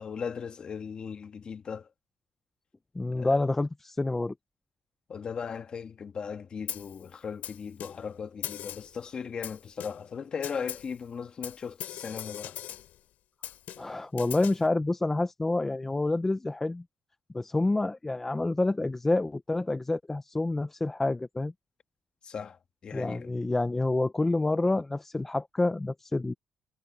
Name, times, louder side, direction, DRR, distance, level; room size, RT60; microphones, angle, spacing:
voice 1, 0.0-1.9 3.2-3.4 5.1-12.6 22.2-23.3, left 6 dB, 35° left, 1.4 m, -38 dB
voice 2, 2.9-4.3 13.8-16.8 17.3-21.5 22.9-26.3, left 2 dB, 10° left, 0.5 m, -28 dB
Snare drum, 6.7-7.0 7.4-8.1 8.4-9.0 9.4-10.1 10.4-11.0 11.4-13.0 13.4-14.7, left 12 dB, 80° left, 3.3 m, -40 dB
cardioid pair, 175°, 3 cm